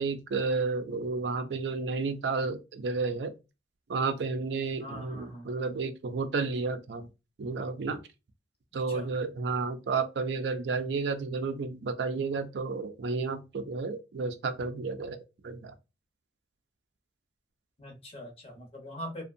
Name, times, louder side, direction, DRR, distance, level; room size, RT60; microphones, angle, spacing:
voice 1, 0.0-3.3 3.9-7.1 7.4-8.0 8.7-15.2 15.4-15.7, right 4 dB, 70° right, 0.4 m, -31 dB
voice 2, 4.8-5.5 8.9-9.1 17.8-19.2, equal, 35° left, 0.8 m, -42 dB
2.6 x 2.2 x 2.5 m
head